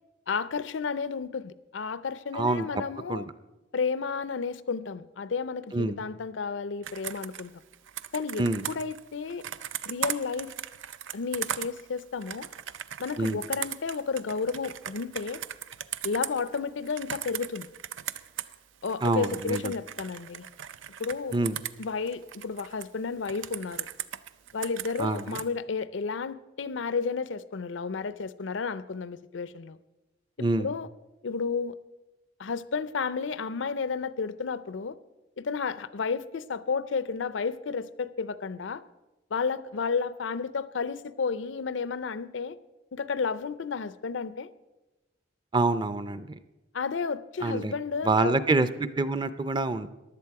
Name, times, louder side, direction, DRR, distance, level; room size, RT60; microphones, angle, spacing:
voice 1, 0.3-3.2 3.7-7.5 8.1-9.4 9.8-10.5 11.1-12.5 13.0-15.4 16.0-17.7 18.8-20.5 21.0-21.4 21.8-23.9 24.5-29.8 30.6-30.9 31.2-31.8 32.4-35.0 35.4-38.8 39.3-42.6 42.9-44.5 46.7-48.4, left 5 dB, 80° left, 16 dB, 0.5 m, -32 dB
voice 2, 2.3-2.7 3.1-3.3 5.7-6.0 8.4-8.6 13.2-13.4 19.0-19.7 21.3-21.6 25.0-25.4 30.4-30.7 45.5-46.4 47.4-47.7 48.0-49.9, right 2 dB, 25° right, 13 dB, 0.5 m, -26 dB
Computer keyboard, 6.8-18.6 18.8-22.9 23.2-25.5, right 10 dB, 85° right, 0.5 m, -38 dB
15.5 x 11.0 x 4.8 m, 1.0 s
head